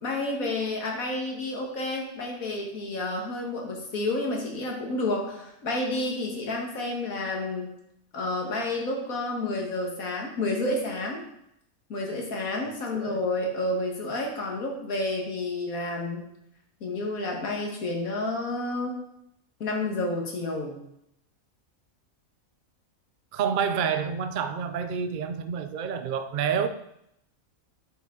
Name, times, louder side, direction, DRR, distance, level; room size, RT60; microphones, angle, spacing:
voice 1, 0.0-7.7 8.1-11.2 11.9-16.2 16.8-19.0 19.6-20.8, left 2 dB, 80° left, 0 dB, 2.1 m, -30 dB
voice 2, 23.3-26.7, right 7 dB, 60° right, 10 dB, 0.5 m, -28 dB
9.3 x 5.8 x 3.8 m, 0.78 s
omnidirectional pair, 1.5 m